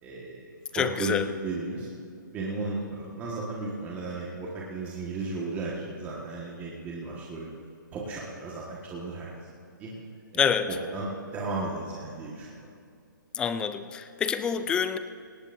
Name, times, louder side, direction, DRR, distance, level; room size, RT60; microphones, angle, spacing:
voice 1, 0.0-1.9 2.3-7.5 7.9-9.3 9.8-9.9 10.3-12.7, right 2 dB, 15° right, -5 dB, 1.5 m, -35 dB
voice 2, 0.7-1.3 10.4-10.7 13.3-15.0, left 7 dB, 10° left, 12 dB, 0.3 m, -27 dB
18.0 x 17.5 x 2.6 m, 2.4 s
hypercardioid pair, 155°, 11 cm